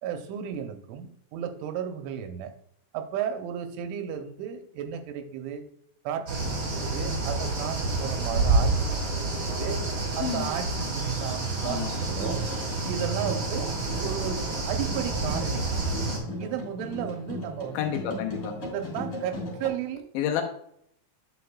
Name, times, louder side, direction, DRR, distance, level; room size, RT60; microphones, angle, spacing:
voice 1, 0.0-2.5 2.9-5.6 6.0-8.7 9.1-9.8 10.1-12.4 12.9-13.7 14.0-15.8 16.4-17.8 18.1-18.3 18.6-20.1, right 9 dB, 80° right, 6 dB, 3.0 m, -34 dB
sound 1, 6.3-16.2, right 3 dB, 40° right, 2.0 m, -28 dB
voice 2, 11.6-12.0 17.7-18.6 20.1-20.4, left 9 dB, 80° left, 4 dB, 3.0 m, -30 dB
sound 2, 12.0-19.7, left 1 dB, 35° left, 2.4 m, -38 dB
9.3 x 7.0 x 2.2 m, 0.70 s
omnidirectional pair, 5.6 m